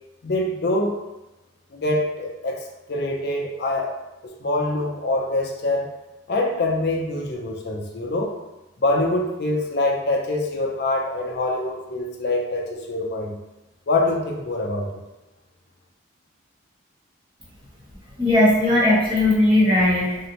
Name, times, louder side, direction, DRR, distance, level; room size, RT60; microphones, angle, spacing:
voice 1, 0.2-1.0 1.7-3.9 4.4-5.9 6.3-8.3 8.8-13.4 13.9-15.0, left 2 dB, 50° left, 0 dB, 0.5 m, -24 dB
voice 2, 18.2-20.2, left 1 dB, 25° right, -7 dB, 0.8 m, -18 dB
3.4 x 2.1 x 2.8 m, 1.0 s
head